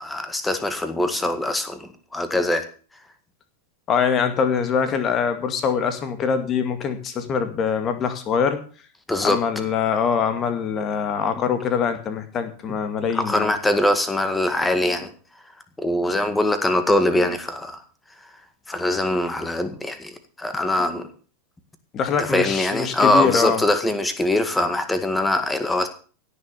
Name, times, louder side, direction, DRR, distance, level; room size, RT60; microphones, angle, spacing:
voice 1, 0.0-2.7 9.1-9.4 13.1-15.1 15.8-17.8 18.7-20.1 20.4-21.1 22.2-25.9, left 1 dB, 10° left, 1.9 m, -22 dB
voice 2, 3.9-8.6 9.2-13.5 21.9-23.6, left 6 dB, 30° left, 2.2 m, -23 dB
17.0 x 6.9 x 6.8 m
figure-of-eight pair, 90°, 0 cm